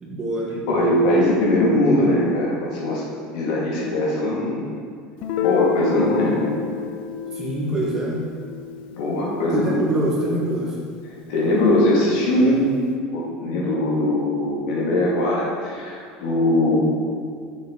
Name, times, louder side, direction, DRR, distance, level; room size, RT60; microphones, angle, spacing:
voice 1, 0.0-0.6 7.3-8.2 9.5-10.8, right 1 dB, 20° right, -3 dB, 1.1 m, -25 dB
voice 2, 0.7-3.0 3.3-4.6 5.4-6.5 8.9-9.9 11.3-12.6 13.1-16.8, left 1 dB, 80° left, -4 dB, 1.8 m, -21 dB
Guitar, 5.2-10.7, left 9 dB, 55° left, 0.4 m, -29 dB
6.7 x 6.4 x 3.7 m, 2.1 s
cardioid pair, 150°, 3 cm